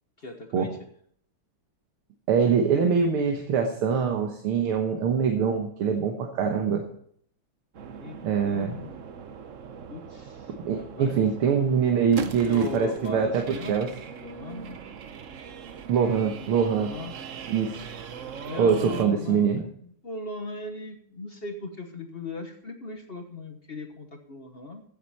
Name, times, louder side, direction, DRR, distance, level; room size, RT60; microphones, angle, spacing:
voice 1, 0.2-0.8 7.8-9.0 9.9-11.3 12.4-13.8 14.1-14.8 16.8-17.1 18.4-24.8, left 2 dB, 40° left, 5 dB, 0.9 m, -38 dB
voice 2, 2.3-6.8 8.2-8.8 10.7-13.4 13.7-13.9 15.9-16.9 17.5-17.8 18.6-19.6, right 6 dB, 80° right, 3 dB, 2.0 m, -24 dB
sound 1, 7.7-19.1, right 7 dB, 65° right, 0.8 m, -40 dB
15.0 x 8.1 x 4.2 m, 0.63 s
omnidirectional pair, 2.4 m